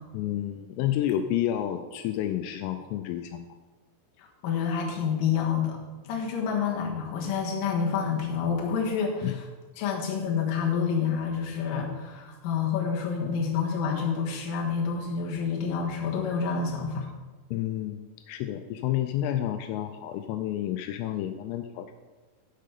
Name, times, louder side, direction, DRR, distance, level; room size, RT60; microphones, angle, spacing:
voice 1, 0.1-3.6 9.2-9.4 9.7-9.9 17.5-21.9, left 12 dB, 85° left, 8 dB, 3.1 m, -30 dB
voice 2, 4.4-5.8 6.0-9.3 9.8-17.1, left 6 dB, 60° left, -1 dB, 2.5 m, -28 dB
10.0 x 6.6 x 6.8 m, 1.3 s
omnidirectional pair, 6.0 m